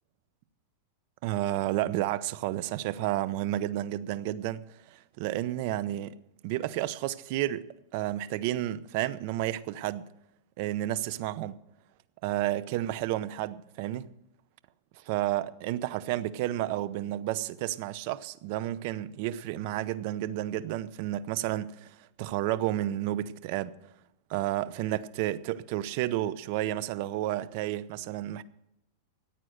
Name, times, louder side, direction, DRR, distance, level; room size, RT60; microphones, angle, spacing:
voice 1, 1.2-4.6 4.9-6.2 6.4-10.1 10.6-11.6 12.2-14.1 15.1-21.9 22.2-23.7 24.3-28.4, right 14 dB, 50° right, 0.7 m, -31 dB
14.5 x 9.0 x 6.5 m
supercardioid pair, 145°, 0 cm